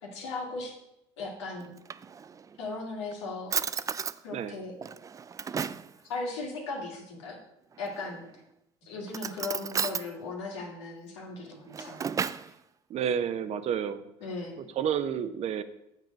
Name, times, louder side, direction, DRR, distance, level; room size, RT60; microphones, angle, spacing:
voice 1, 0.0-0.7 1.2-1.7 2.6-3.6 4.2-4.8 6.1-7.4 7.8-8.3 8.8-12.2 12.5-12.6 14.2-14.6, left 3 dB, 90° left, 0 dB, 2.0 m, -37 dB
Drawer open or close, 1.6-2.6 3.1-3.2 3.5-4.2 4.8-5.9 7.8-8.3 9.1-10.1 11.5-12.5, right 6 dB, 25° right, 0.3 m, -33 dB
voice 2, 12.9-14.0 14.8-15.6, right 8 dB, 50° right, 12 dB, 0.7 m, -30 dB
7.2 x 5.5 x 5.2 m, 0.82 s
supercardioid pair, 80°, 14 cm